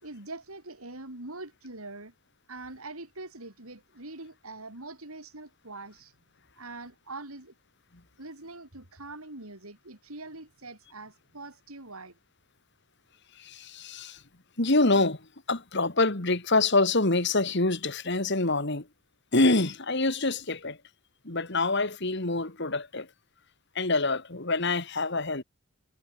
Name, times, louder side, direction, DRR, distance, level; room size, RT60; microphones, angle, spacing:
voice 1, 0.0-2.1 2.5-6.1 6.6-7.5 8.2-12.2, right 2 dB, 75° right, 4.7 m, -43 dB
voice 2, 13.4-14.2 14.6-15.2 15.5-18.9 19.3-20.8 21.2-23.1 23.8-25.4, left 2 dB, 50° left, 2.2 m, -26 dB
head